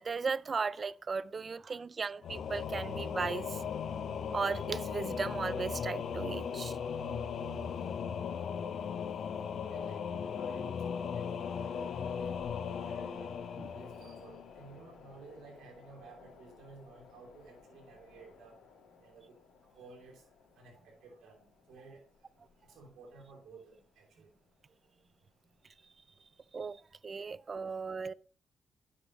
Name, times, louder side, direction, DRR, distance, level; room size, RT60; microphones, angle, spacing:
voice 1, 0.0-3.6 4.3-6.8 13.6-13.7 26.5-28.1, right 5 dB, 45° right, 0.4 m, -36 dB
Singing / Musical instrument, 2.2-14.8, left 7 dB, 70° left, 0.7 m, -37 dB
voice 2, 9.7-13.3 13.7-18.6 19.0-19.4 19.7-20.3 20.5-22.0 22.6-24.3, right 3 dB, 80° right, 3.0 m, -54 dB
sound 1, 11.4-25.9 26.3-26.4, left 5 dB, 85° left, 2.6 m, -57 dB
9.8 x 7.0 x 3.0 m
supercardioid pair, 50°, 0 cm